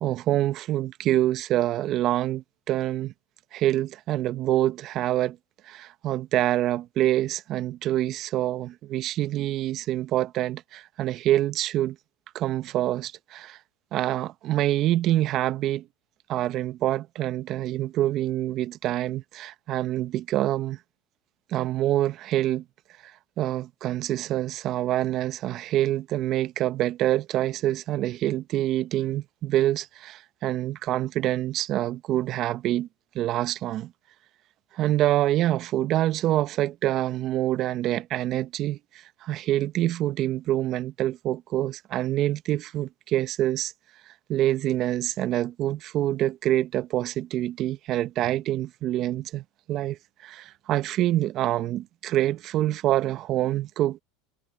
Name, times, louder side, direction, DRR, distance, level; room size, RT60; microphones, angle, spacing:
voice 1, 0.0-3.1 3.5-5.4 5.6-12.0 12.3-13.6 13.9-15.8 16.3-20.8 21.5-22.6 23.0-23.1 23.4-32.9 33.1-33.9 34.7-43.7 44.1-54.0, right 13 dB, 50° right, 1.0 m, -26 dB
supercardioid pair, 100°, 0 cm